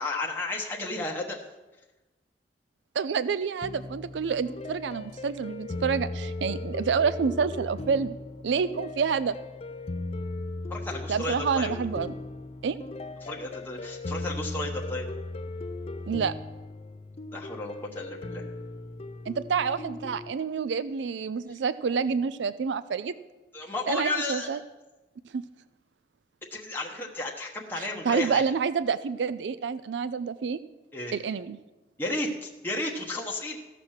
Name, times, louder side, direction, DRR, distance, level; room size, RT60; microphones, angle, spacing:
voice 1, 0.0-1.4 10.7-11.7 13.2-15.1 17.3-18.4 23.5-24.6 26.5-28.4 30.9-31.1 32.0-33.6, left 2 dB, 10° left, -2 dB, 1.1 m, -33 dB
voice 2, 3.0-8.2 8.4-9.4 11.1-12.1 12.6-12.8 16.1-16.3 19.3-23.1 23.9-24.6 25.3-25.4 27.8-30.6 31.1-31.6, right 6 dB, 80° right, 15 dB, 0.4 m, -28 dB
sound 1, 3.6-20.3, left 2 dB, 35° left, 0.4 m, -37 dB
15.0 x 5.9 x 6.5 m, 1.1 s
head